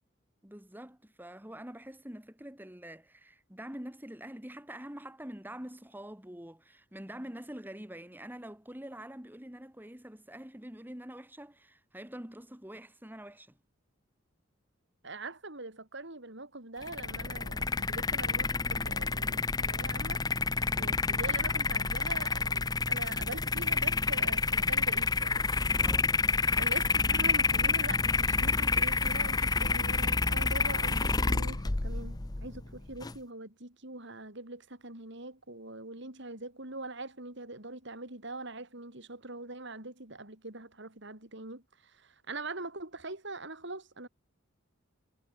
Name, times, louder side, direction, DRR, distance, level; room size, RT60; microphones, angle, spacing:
voice 1, 0.4-13.6 25.8-26.2, right 1 dB, 10° right, 2.6 m, -45 dB
voice 2, 15.0-20.5 20.7-25.4 26.6-44.1, right 2 dB, 60° right, 4.7 m, -43 dB
sound 1, 16.8-33.2, left 4 dB, 20° left, 0.7 m, -29 dB
head